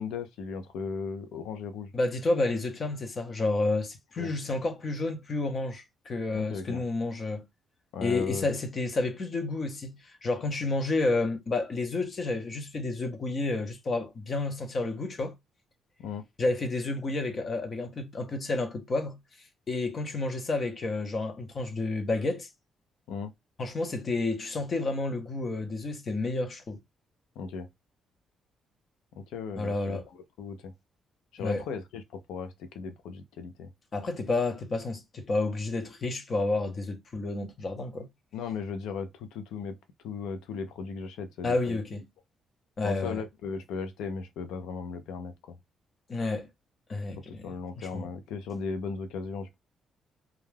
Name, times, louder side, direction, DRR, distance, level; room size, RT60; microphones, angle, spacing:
voice 1, 0.0-1.9 4.2-4.3 6.3-6.8 7.9-8.5 16.0-16.2 23.1-23.3 27.4-27.7 29.2-30.0 30.4-30.7 31.3-33.7 38.3-39.8 40.0-41.8 42.8-45.3 47.3-49.5, left 5 dB, 90° left, 0.5 m, -36 dB
voice 2, 1.9-7.5 8.0-15.3 16.4-19.2 19.7-22.5 23.6-26.8 29.6-30.1 31.4-31.6 33.9-38.1 41.4-42.0 42.8-43.2 46.1-46.5 46.9-48.1, left 2 dB, 40° left, 0.7 m, -30 dB
2.3 x 2.2 x 3.2 m
cardioid pair, 90°, 0 cm